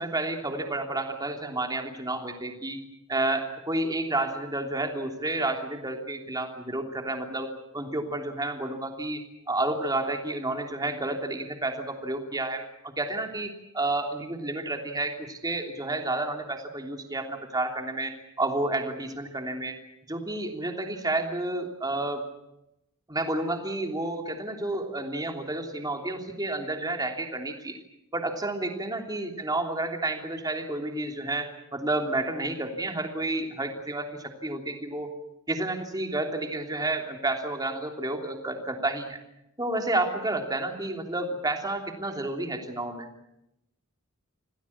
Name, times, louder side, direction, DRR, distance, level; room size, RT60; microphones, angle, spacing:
voice 1, 0.0-2.8 3.1-7.5 7.7-9.2 9.5-19.7 20.1-22.2 23.1-27.8 28.1-35.1 35.5-39.2 39.6-43.1, right 2 dB, 20° right, 3 dB, 3.1 m, -30 dB
27.0 x 18.5 x 8.7 m, 0.86 s
head